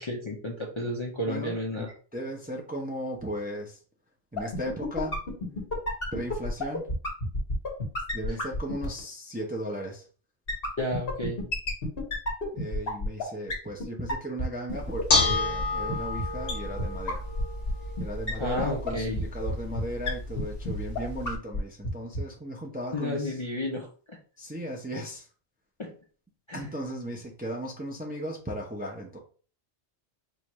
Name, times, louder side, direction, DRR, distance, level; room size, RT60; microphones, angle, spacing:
voice 1, 0.0-1.9 8.3-8.4 10.8-11.4 18.4-19.2 22.9-24.2 25.8-25.9 26.5-26.7, left 1 dB, 35° left, -2 dB, 0.6 m, -32 dB
voice 2, 1.3-1.8 2.1-3.8 4.3-5.6 6.1-6.9 8.1-10.0 12.5-17.2 18.0-23.3 24.4-25.3 26.5-29.2, equal, 10° right, -1 dB, 0.5 m, -36 dB
sound 1, 4.4-9.0 10.5-13.2 13.5-13.6 13.8-13.9 14.1-14.2 14.4-14.5 14.7-14.8 15.0-15.1 15.3-15.4 15.6-15.7 15.9-16.0 16.2-16.3 16.5-16.6 16.8-16.9 17.1-17.2 17.4-17.7 18.0-18.1 18.3-18.4 18.6-18.7 18.9-19.0 19.2-19.3 19.5-19.6 19.8-19.9 20.1-20.2 20.4-20.5 20.6-20.7 21.0-21.1 21.3-21.6 21.8-21.9 22.1-22.2, left 2 dB, 55° left, 1.5 m, -30 dB
Bell / Dishes pots and pans, 14.7-21.4, left 2 dB, 85° left, 1.2 m, -31 dB
4.9 x 2.5 x 3.0 m, 0.40 s
omnidirectional pair, 1.2 m